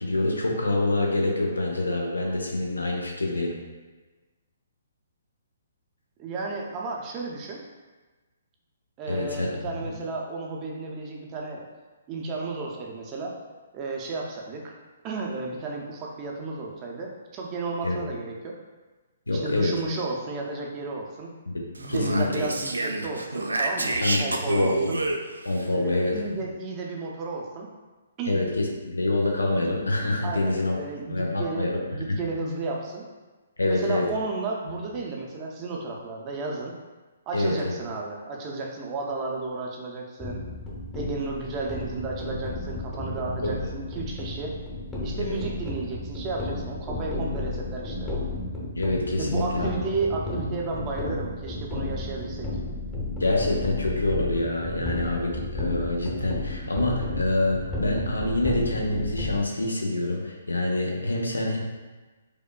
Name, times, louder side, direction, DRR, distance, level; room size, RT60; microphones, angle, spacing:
voice 1, 0.0-3.5 9.1-9.5 9.9-10.0 17.8-18.0 19.3-19.7 21.9-22.4 24.0-24.2 24.5-24.9 25.4-26.1 28.3-30.8 31.1-31.8 32.1-32.2 33.6-34.1 37.3-37.8 43.1-43.2 43.5-43.7 45.2-45.4 48.7-49.7 53.2-61.6, left 2 dB, 80° left, 0 dB, 0.6 m, -26 dB
voice 2, 6.2-7.6 9.0-11.6 12.1-13.3 13.7-14.7 15.0-18.6 19.3-21.3 21.8-25.0 25.7-27.7 28.2-28.4 30.2-33.1 33.6-36.7 37.3-40.4 40.9-44.5 45.0-48.1 49.2-52.5, right 3 dB, 30° right, -1 dB, 0.5 m, -33 dB
Speech, 21.7-25.6, right 2 dB, 80° right, 0.3 m, -29 dB
sound 1, 40.2-59.4, left 2 dB, 10° left, 0.7 m, -33 dB
4.8 x 2.2 x 2.2 m, 1.3 s
figure-of-eight pair, 125°, 0 cm